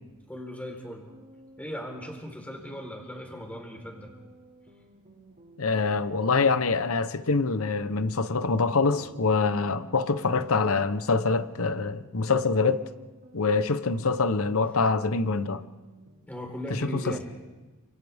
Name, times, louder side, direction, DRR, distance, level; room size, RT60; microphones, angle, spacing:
voice 1, 0.3-1.1 1.6-4.1 16.3-17.3, equal, 5° left, 4.1 m, -38 dB
sound 1, 0.8-16.4, right 1 dB, 45° right, 5.8 m, -54 dB
voice 2, 5.6-12.8 13.3-15.6 17.1-17.2, left 4 dB, 65° left, 0.9 m, -25 dB
29.5 x 26.5 x 3.6 m
head